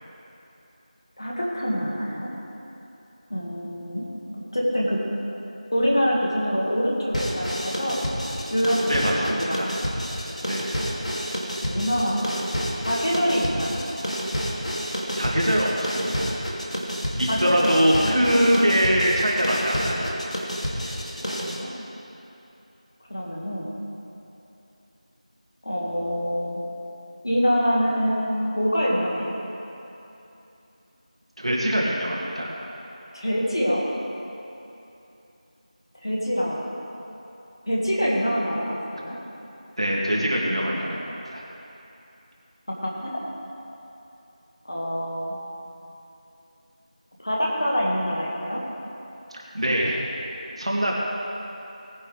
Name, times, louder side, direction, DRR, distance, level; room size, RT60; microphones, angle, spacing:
voice 1, 1.2-2.3 3.3-4.1 4.5-5.1 5.7-8.0 8.5-9.7 11.6-12.4 12.8-13.8 17.2-18.3 18.6-18.8 20.8-20.9 21.3-21.7 23.1-23.7 25.6-26.6 27.2-29.4 33.1-33.9 36.0-36.6 37.7-39.2 42.7-43.2 44.7-45.3 47.2-48.6, equal, 35° left, -4 dB, 1.8 m, -25 dB
sound 1, 7.1-21.6, equal, 60° left, 2.4 m, -29 dB
voice 2, 8.9-9.7 10.5-10.6 15.1-16.3 17.2-20.1 31.4-32.5 39.8-41.4 49.5-50.0 50.6-50.9, equal, 50° right, -3 dB, 2.4 m, -23 dB
19.0 x 10.0 x 3.3 m, 2.9 s
figure-of-eight pair, 180°, 4 cm